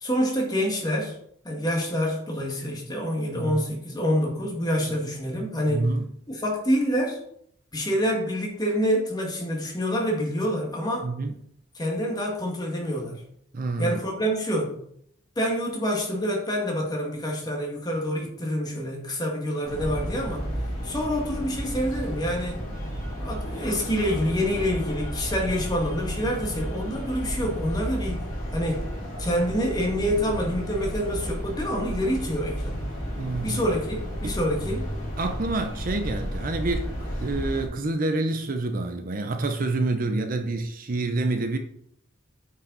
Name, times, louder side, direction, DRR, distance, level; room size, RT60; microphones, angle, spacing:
voice 1, 0.0-1.2 1.4-5.9 6.3-7.2 7.7-11.1 11.7-13.2 13.8-14.7 15.4-20.4 20.8-22.6 23.2-28.2 28.5-28.9 29.2-32.8 33.4-34.9, equal, 20° left, -1 dB, 1.8 m, -27 dB
voice 2, 5.7-6.1 11.0-11.3 13.5-14.0 33.1-33.6 35.2-36.9 37.2-41.6, right 2 dB, 40° right, 6 dB, 0.6 m, -27 dB
sound 1, 19.6-37.7, equal, 40° left, 3.6 m, -32 dB
8.7 x 5.4 x 3.9 m, 0.69 s
head